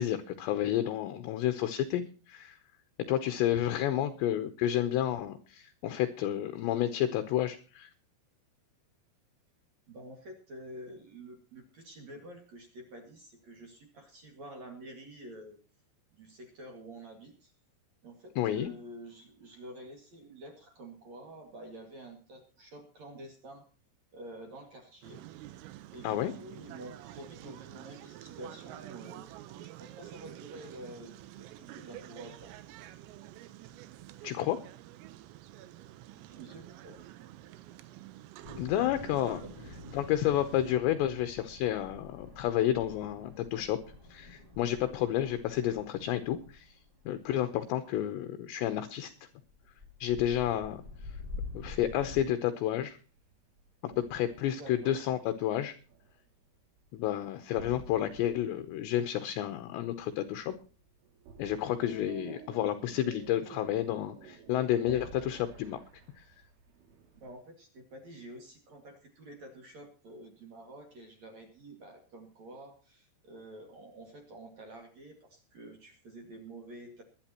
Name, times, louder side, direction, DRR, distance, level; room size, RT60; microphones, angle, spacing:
voice 1, 0.0-2.6 3.1-7.9 18.4-18.7 26.0-26.3 34.2-34.6 38.6-39.4 39.9-43.8 44.1-46.7 47.1-49.1 50.0-50.8 51.5-53.0 53.8-55.7 56.9-60.5 61.4-65.8, left 12 dB, 75° left, 9 dB, 2.7 m, -30 dB
voice 2, 3.5-4.2 9.9-15.6 16.1-17.5 18.0-23.7 24.1-25.2 25.9-32.5 36.1-37.0 39.4-39.5 54.5-55.0 62.2-62.8 67.2-77.0, right 1 dB, 50° right, 3 dB, 2.4 m, -49 dB
sound 1, 25.0-40.8, right 14 dB, 90° right, 3.5 m, -49 dB
sound 2, 38.4-47.2 49.5-52.2, left 3 dB, 15° right, 1.7 m, -47 dB
sound 3, 48.0-48.4 48.8-49.9 50.4-52.7 53.2-55.3 55.7-56.4 56.8-57.2 57.6-67.3, right 6 dB, 75° right, 5.0 m, -52 dB
22.0 x 11.0 x 2.9 m, 0.36 s
omnidirectional pair, 5.9 m